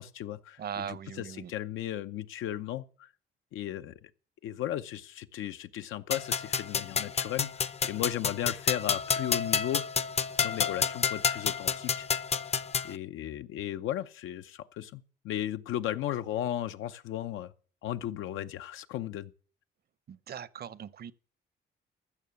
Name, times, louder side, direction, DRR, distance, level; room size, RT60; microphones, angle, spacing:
voice 1, 0.0-3.1 3.5-4.1 4.4-10.0 10.4-12.1 12.8-17.5 17.8-19.3, left 12 dB, 85° left, 0.7 m, -35 dB
voice 2, 0.6-1.5 20.1-21.1, right 8 dB, 50° right, 0.8 m, -40 dB
sound 1, 6.1-12.9, left 6 dB, 30° left, 0.6 m, -30 dB
14.5 x 6.7 x 7.0 m
cardioid pair, 90°, 20 cm